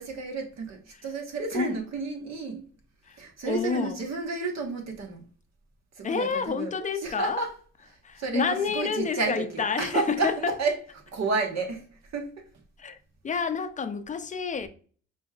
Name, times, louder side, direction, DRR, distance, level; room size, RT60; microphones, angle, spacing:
voice 1, 0.0-2.6 3.2-5.2 5.9-7.6 7.9-10.8 11.1-12.5, right 4 dB, 60° right, 1.4 m, -31 dB
voice 2, 3.1-4.0 6.0-7.4 8.0-10.5 12.8-13.0 13.2-14.7, left 5 dB, 25° left, 0.5 m, -29 dB
5.1 x 3.3 x 2.4 m
cardioid pair, 90°, 30 cm